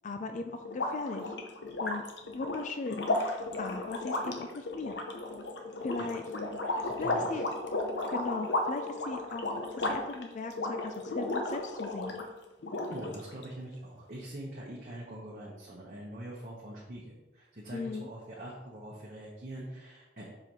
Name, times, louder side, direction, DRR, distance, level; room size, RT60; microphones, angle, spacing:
voice 1, 0.0-1.3 1.8-2.0 2.3-5.0 5.8-6.3 6.7-7.4 8.1-12.2 17.7-18.1, left 3 dB, 45° left, 6 dB, 0.4 m, -38 dB
sound 1, 0.6-12.3 12.6-13.4, left 2 dB, 70° left, 0.8 m, -34 dB
voice 2, 6.8-7.4 12.9-20.3, right 1 dB, 45° right, -5 dB, 0.9 m, -44 dB
4.9 x 4.6 x 5.2 m, 1.1 s
head